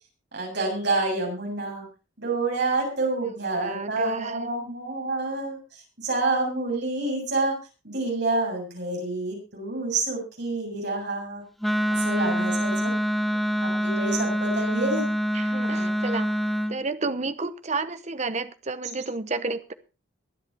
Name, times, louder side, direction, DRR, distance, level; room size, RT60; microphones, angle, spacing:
voice 1, 0.3-1.8 2.2-5.6 6.0-7.5 7.8-11.4 11.9-12.9 13.6-15.1 15.7-15.9, right 2 dB, 55° right, -1 dB, 7.6 m, -28 dB
voice 2, 3.6-4.5 15.3-16.3 16.7-19.7, right 3 dB, 35° right, 12 dB, 0.9 m, -31 dB
Wind instrument woodwind instrument, 11.6-16.8, equal, ahead, 0.7 m, -25 dB
23.0 x 8.0 x 4.1 m, 0.32 s
head